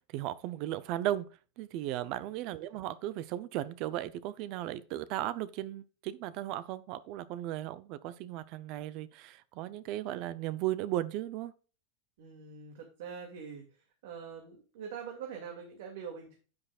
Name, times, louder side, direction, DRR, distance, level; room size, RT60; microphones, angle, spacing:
voice 1, 0.1-1.3 1.6-11.5, right 13 dB, 40° right, 0.6 m, -36 dB
voice 2, 12.2-16.4, right 6 dB, 65° right, 2.3 m, -44 dB
9.6 x 8.9 x 2.4 m
supercardioid pair, 170°, 0 cm